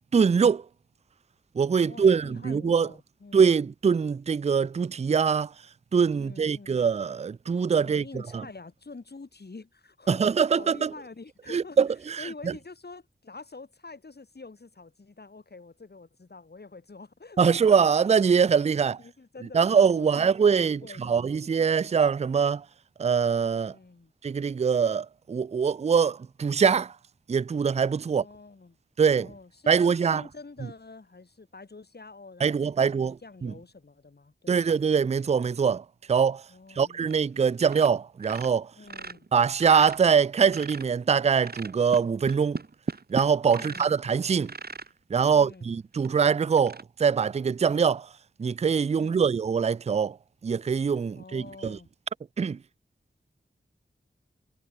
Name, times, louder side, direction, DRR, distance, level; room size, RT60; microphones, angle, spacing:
voice 1, 0.1-0.6 1.6-2.9 3.3-5.5 5.9-8.0 8.3-8.4 10.1-10.9 11.5-12.3 17.4-19.0 19.5-22.6 23.0-23.7 24.2-26.9 27.3-28.2 29.0-29.3 29.7-30.2 32.4-33.1 33.4-33.5 34.5-36.4 36.8-38.7 39.3-42.6 43.1-44.5 45.1-48.1 48.4-50.2 50.4-51.8 52.4-52.6, right 6 dB, 35° right, 0.4 m, -23 dB
voice 2, 1.8-3.5 6.1-6.9 7.8-11.8 12.2-17.8 19.0-19.6 20.0-21.7 23.6-24.1 28.1-28.8 29.1-34.6 36.5-37.1 38.7-39.3 43.5-43.9 45.3-45.7 49.0-49.4 51.1-51.9, left 3 dB, 60° left, 6.3 m, -47 dB
sound 1, 37.0-37.4 37.6-37.9 38.2-41.0 41.4-44.0 44.4-44.9 45.5-45.6 46.0-46.1 46.6-46.8, right 4 dB, 55° right, 1.8 m, -38 dB
wide cardioid pair, 85°, 19 cm